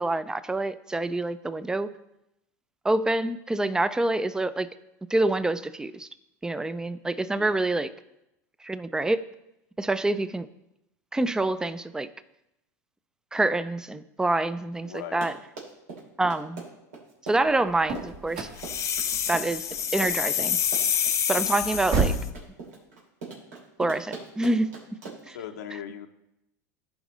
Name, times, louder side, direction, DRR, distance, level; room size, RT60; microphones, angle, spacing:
voice 1, 0.0-1.9 2.8-4.7 5.1-6.1 6.4-7.9 8.6-9.2 9.8-10.5 11.1-12.1 13.3-15.3 16.2-16.6 17.3-18.5 19.3-19.7 19.9-20.6 21.3-22.1 23.8-24.7 25.3-25.4, right 2 dB, 10° right, 15 dB, 0.4 m, -26 dB
voice 2, 14.8-15.3 25.3-26.1, left 9 dB, 85° left, 5 dB, 0.7 m, -39 dB
Run, 15.0-25.4, right 4 dB, 85° right, 2.8 m, -41 dB
sound 1, 17.4-22.4, right 4 dB, 50° right, 1.9 m, -32 dB
sound 2, 18.6-22.3, left 8 dB, 35° left, 0.8 m, -27 dB
15.0 x 5.1 x 3.1 m, 0.89 s
hypercardioid pair, 100°, 9 cm